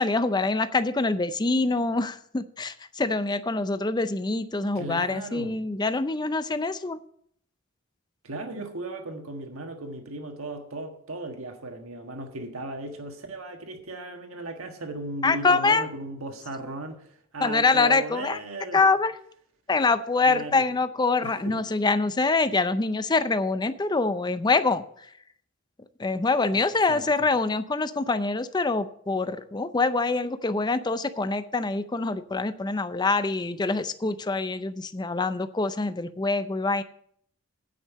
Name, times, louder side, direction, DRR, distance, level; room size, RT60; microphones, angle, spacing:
voice 1, 0.0-7.0 15.2-15.9 17.4-18.4 18.7-19.1 19.7-24.8 26.0-36.8, left 3 dB, 20° left, 0.5 m, -25 dB
voice 2, 4.7-5.5 8.2-18.9 20.3-20.6 21.2-21.6 26.5-27.0, right 2 dB, 80° right, 1.5 m, -36 dB
9.3 x 5.5 x 8.2 m
head